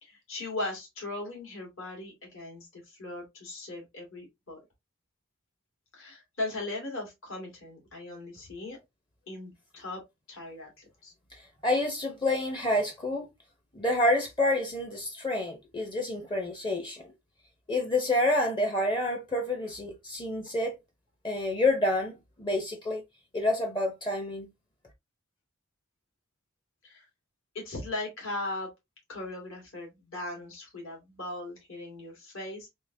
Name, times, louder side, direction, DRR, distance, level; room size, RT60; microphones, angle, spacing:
voice 1, 0.0-4.6 5.9-8.8 9.3-10.0 10.3-11.1 26.8-27.1 27.5-28.7 29.1-32.7, left 2 dB, 75° left, 1.9 m, -38 dB
voice 2, 11.6-13.3 13.7-17.0 17.7-20.8 21.2-23.0 23.3-24.5, left 1 dB, 25° left, 0.6 m, -28 dB
3.6 x 2.7 x 2.6 m
head